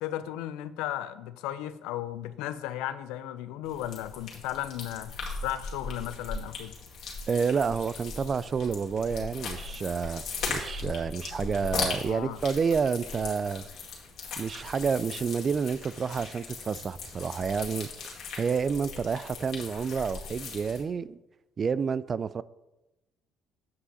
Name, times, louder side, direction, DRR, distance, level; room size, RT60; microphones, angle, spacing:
voice 1, 0.0-5.1 5.4-6.7 11.4-11.5 12.1-12.4, left 12 dB, 80° left, 0.4 m, -35 dB
sound 1, 3.6-20.8, left 4 dB, 65° left, 2.1 m, -38 dB
voice 2, 7.3-13.7 14.4-17.9 18.4-21.2 21.6-22.4, right 6 dB, 40° right, 0.3 m, -29 dB
8.0 x 5.6 x 4.1 m
supercardioid pair, 70°, 0 cm